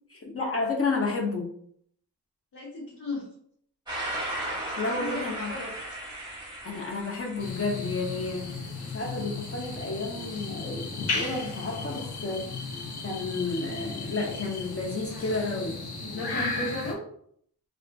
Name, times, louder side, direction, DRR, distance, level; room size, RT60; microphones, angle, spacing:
voice 1, 0.1-1.5 4.8-5.5 6.6-8.6 8.9-12.5 13.0-15.8, left 3 dB, 35° left, -1 dB, 0.6 m, -31 dB
voice 2, 2.5-3.2 5.0-5.7 15.1-15.6 16.0-17.0, left 2 dB, 65° left, -7 dB, 1.0 m, -36 dB
sound 1, 3.9-15.7, right 1 dB, 10° right, 0.9 m, -40 dB
sound 2, 7.4-16.9, left 3 dB, 85° left, 0.6 m, -35 dB
2.5 x 2.4 x 2.2 m, 0.65 s
wide cardioid pair, 85°, 39 cm